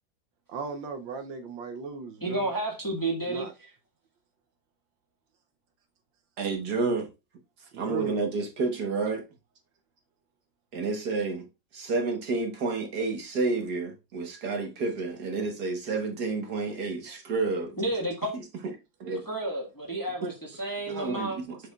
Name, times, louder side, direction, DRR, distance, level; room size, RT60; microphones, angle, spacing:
voice 1, 0.5-2.5 3.2-3.5 7.7-8.2, right 4 dB, 75° right, 1.5 m, -37 dB
voice 2, 2.2-3.5 17.8-18.3 19.3-21.4, right 2 dB, 10° left, 1.4 m, -31 dB
voice 3, 6.4-7.1 7.6-9.2 10.7-11.5 11.7-17.8 18.3-18.7 19.0-19.2 20.9-21.6, right 3 dB, 55° right, 1.6 m, -30 dB
6.9 x 6.3 x 2.4 m
omnidirectional pair, 2.2 m